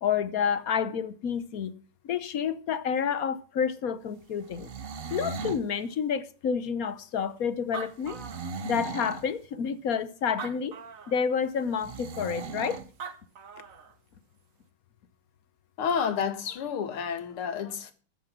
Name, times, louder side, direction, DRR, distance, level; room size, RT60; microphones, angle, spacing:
voice 1, 0.0-1.7 2.0-4.7 5.1-8.2 8.6-10.8 11.1-12.8, left 7 dB, 60° left, 1.0 m, -29 dB
sound 1, 4.4-5.7 8.0-9.3 11.8-12.9, right 5 dB, 65° right, 0.5 m, -37 dB
Animal, 7.3-7.4 7.6-9.0 9.6-9.7 10.3-11.3 12.7-12.8 13.0-13.9, right 6 dB, 45° right, 1.5 m, -41 dB
voice 2, 15.8-17.9, left 7 dB, 80° left, 2.4 m, -30 dB
14.0 x 8.8 x 6.0 m
omnidirectional pair, 2.4 m